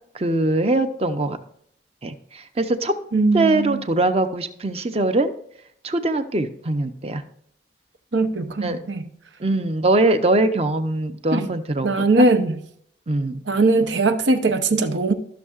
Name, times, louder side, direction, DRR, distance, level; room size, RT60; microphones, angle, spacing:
voice 1, 0.1-1.4 2.0-2.9 3.3-5.3 5.8-7.2 8.6-8.8 9.4-11.9 12.2-12.3 13.1-13.4, right 2 dB, 35° right, 0.7 m, -22 dB
voice 2, 3.1-3.8 8.1-9.0 11.3-11.4 11.8-12.6 13.5-15.1, right 3 dB, 90° right, 0.8 m, -20 dB
14.0 x 6.4 x 2.4 m
head